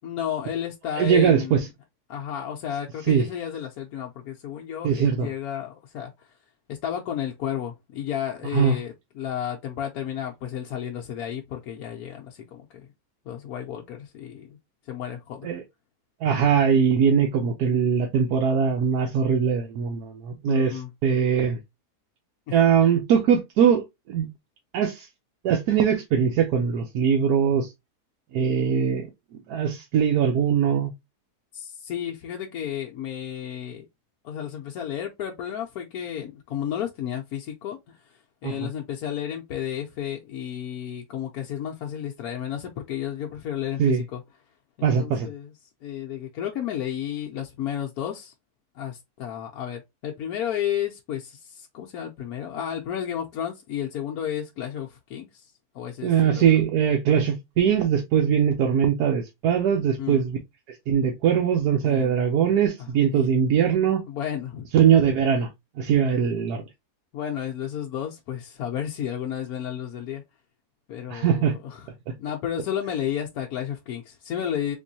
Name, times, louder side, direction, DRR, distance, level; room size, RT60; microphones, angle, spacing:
voice 1, 0.0-1.6 2.1-6.3 6.7-12.9 13.3-14.6 14.9-15.5 20.5-20.9 22.5-22.6 31.5-33.8 34.2-44.2 44.8-45.5 45.8-48.3 48.8-56.4 60.0-60.2 61.8-62.3 62.8-63.4 64.1-64.7 67.1-70.2 70.9-71.9 72.2-74.8, left 10 dB, 75° left, 1.1 m, -32 dB
voice 2, 0.9-1.7 3.1-3.3 4.8-5.3 8.5-8.8 15.4-15.6 16.2-21.6 22.5-24.3 24.7-25.1 25.4-27.7 28.3-29.1 29.3-30.9 38.4-38.7 43.8-44.0 44.8-45.3 56.0-60.4 60.7-64.0 64.7-65.5 65.8-66.6 71.1-71.6, right 7 dB, 75° right, 1.2 m, -21 dB
3.6 x 3.0 x 2.6 m
omnidirectional pair, 1.7 m